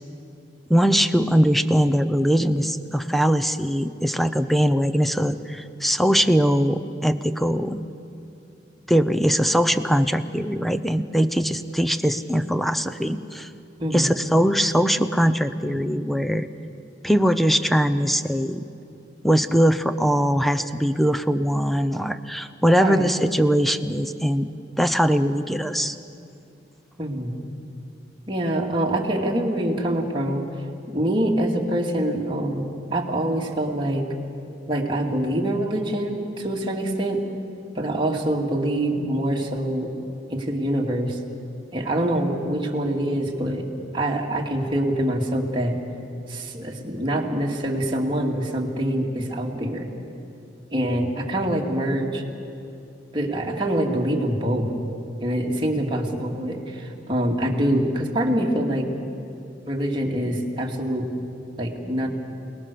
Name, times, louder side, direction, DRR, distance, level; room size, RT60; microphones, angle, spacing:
voice 1, 0.7-7.8 8.9-13.5 13.9-16.5 17.0-18.7 19.2-24.5 24.8-26.0, equal, ahead, 11 dB, 0.7 m, -21 dB
voice 2, 13.8-14.1 22.7-23.1 27.0-27.4 28.3-30.4 30.9-34.1 34.7-37.2 37.7-39.9 40.3-41.2 41.7-43.7 43.9-45.8 46.3-49.9 50.7-52.2 53.1-54.7 55.2-58.9 59.7-61.1 61.6-62.1, right 1 dB, 30° right, -1 dB, 2.5 m, -25 dB
28.5 x 19.5 x 6.9 m, 2.6 s
head